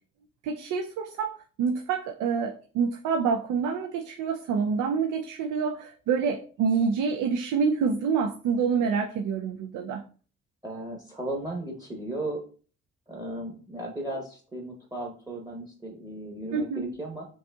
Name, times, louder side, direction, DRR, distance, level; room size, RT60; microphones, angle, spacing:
voice 1, 0.4-10.0 16.5-16.9, right 6 dB, 80° right, 4 dB, 0.5 m, -27 dB
voice 2, 10.6-12.4 13.1-17.3, right 1 dB, 15° right, -1 dB, 0.9 m, -35 dB
5.3 x 2.7 x 2.3 m, 0.40 s
cardioid pair, 90°, 30 cm